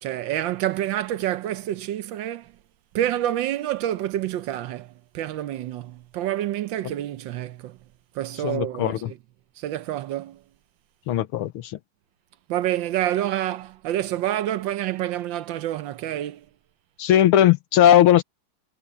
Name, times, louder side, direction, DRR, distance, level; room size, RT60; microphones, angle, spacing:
voice 1, 0.0-2.5 2.9-7.8 8.1-9.2 9.6-10.4 12.5-16.5, right 12 dB, 70° right, 1.2 m, -28 dB
voice 2, 8.4-9.1 11.1-11.8 17.0-18.2, left 11 dB, 85° left, 1.7 m, -18 dB
omnidirectional pair, 2.4 m